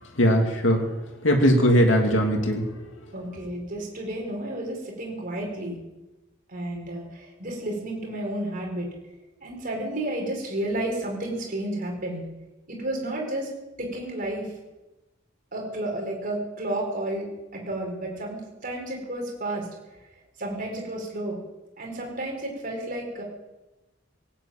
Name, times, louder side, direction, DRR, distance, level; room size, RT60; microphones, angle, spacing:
voice 1, 0.2-0.8 1.2-2.6, equal, 75° left, 2 dB, 2.6 m, -19 dB
voice 2, 3.1-5.8 6.5-8.9 9.4-12.2 12.7-13.5 13.8-14.5 15.5-19.7 20.4-21.4 21.8-23.2, right 1 dB, 45° right, 0 dB, 4.9 m, -31 dB
18.0 x 9.0 x 8.8 m, 1.1 s
head